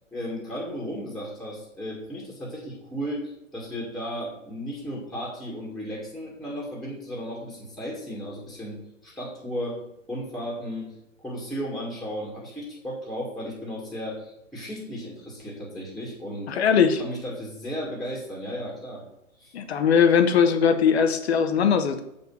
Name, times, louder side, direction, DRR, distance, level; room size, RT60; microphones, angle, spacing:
voice 1, 0.1-8.8 9.0-9.8 10.1-10.9 11.2-16.5 17.0-19.0 19.4-19.5, equal, ahead, -4 dB, 2.0 m, -34 dB
voice 2, 16.5-17.0 19.5-22.0, left 7 dB, 50° left, 9 dB, 1.2 m, -20 dB
7.7 x 5.3 x 5.4 m, 0.87 s
hypercardioid pair, 135°, 40 cm